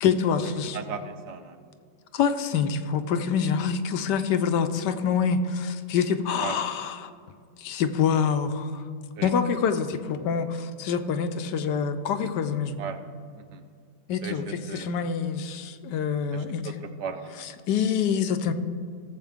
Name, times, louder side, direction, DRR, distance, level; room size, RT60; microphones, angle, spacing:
voice 1, 0.0-0.8 2.1-7.1 7.6-8.8 9.2-12.8 14.1-16.7 17.4-18.5, left 6 dB, 80° left, 9 dB, 1.2 m, -26 dB
voice 2, 0.7-1.6 6.4-6.6 9.2-9.3 12.8-13.0 13.4-13.6 14.2-14.9 16.3-16.7 17.0-17.5, right 6 dB, 70° right, 8 dB, 1.3 m, -36 dB
17.5 x 7.4 x 3.5 m, 2.2 s
omnidirectional pair, 1.9 m